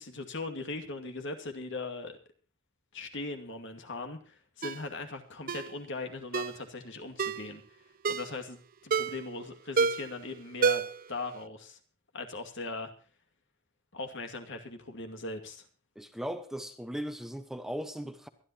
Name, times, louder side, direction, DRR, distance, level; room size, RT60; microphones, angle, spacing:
voice 1, 0.0-2.2 2.9-7.6 8.1-11.8 12.1-12.9 13.9-15.7, left 3 dB, 65° left, 2.3 m, -39 dB
Ringtone, 4.6-4.8 5.5-5.7 6.3-6.6 7.2-7.5 8.0-8.3 8.9-9.3 9.8-10.2 10.6-11.1 11.4-11.5, right 5 dB, 45° right, 0.6 m, -29 dB
voice 2, 16.0-18.3, equal, ahead, 1.1 m, -38 dB
23.5 x 11.0 x 2.9 m
head